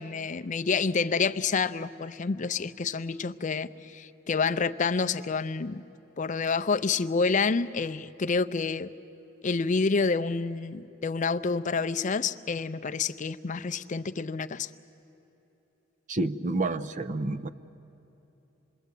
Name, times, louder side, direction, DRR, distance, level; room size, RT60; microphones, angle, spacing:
voice 1, 0.0-5.8 6.2-8.9 9.4-14.7, left 4 dB, 40° left, 12 dB, 0.5 m, -28 dB
voice 2, 16.1-17.5, right 2 dB, 40° right, 12 dB, 0.6 m, -29 dB
27.5 x 21.5 x 8.3 m, 3.0 s
head